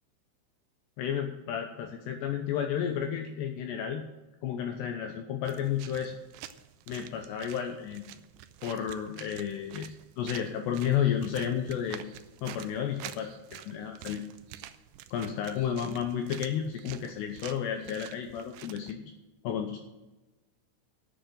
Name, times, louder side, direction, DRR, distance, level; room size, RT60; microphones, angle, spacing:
voice 1, 1.0-4.1 4.4-6.2 6.9-8.0 8.6-9.9 10.2-12.1 12.4-14.2 15.1-19.0 19.4-19.8, left 9 dB, 85° left, 5 dB, 2.4 m, -32 dB
sound 1, 5.4-18.9, right 13 dB, 85° right, 2.6 m, -48 dB
11.5 x 7.3 x 7.6 m, 1.1 s
omnidirectional pair, 6.0 m